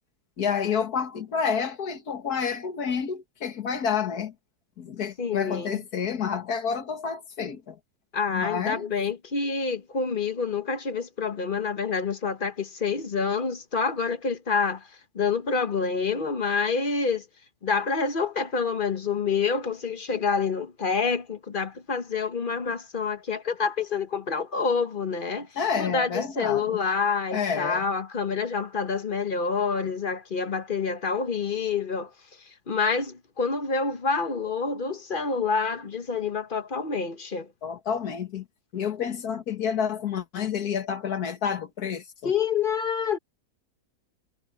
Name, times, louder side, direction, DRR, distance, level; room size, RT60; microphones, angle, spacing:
voice 1, 0.4-4.3 4.8-7.8 8.3-8.9 25.6-26.8 27.3-27.9 37.6-38.4 38.7-42.3, left 7 dB, 60° left, 2.1 m, -29 dB
voice 2, 5.2-5.8 8.1-14.9 15.1-17.2 17.6-25.5 25.8-32.1 32.7-37.5 42.2-43.2, left 5 dB, 35° left, 1.0 m, -27 dB
omnidirectional pair, 1.9 m